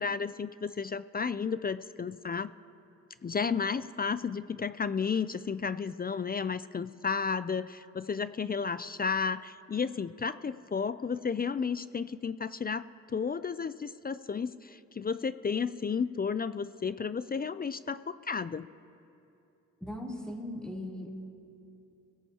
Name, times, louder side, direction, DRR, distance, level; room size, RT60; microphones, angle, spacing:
voice 1, 0.0-2.5 3.2-18.7, left 5 dB, 30° left, 14 dB, 0.4 m, -32 dB
voice 2, 19.8-21.1, left 1 dB, 5° left, -3 dB, 3.3 m, -38 dB
24.0 x 16.5 x 2.9 m, 2.8 s
cardioid pair, 60°, 31 cm